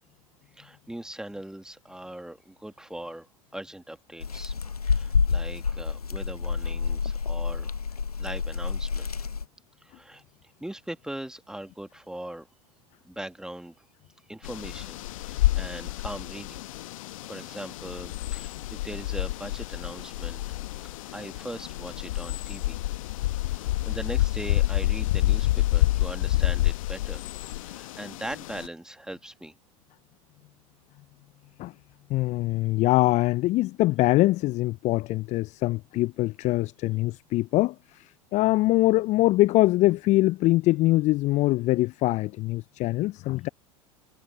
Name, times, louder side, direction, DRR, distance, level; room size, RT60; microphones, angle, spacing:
voice 1, 0.5-4.5 4.8-7.7 8.2-9.1 9.8-10.2 10.6-12.5 13.1-13.9 14.3-16.6 17.2-20.4 20.8-22.8 23.5-27.3 27.6-29.5, right 1 dB, 5° right, 2.2 m, -40 dB
sound 1, 4.2-9.4, left 5 dB, 85° left, 0.9 m, -28 dB
sound 2, 14.4-28.7, left 16 dB, 65° left, 1.2 m, -28 dB
voice 2, 32.1-43.5, left 18 dB, 40° left, 0.6 m, -23 dB
figure-of-eight pair, 80°, 19 cm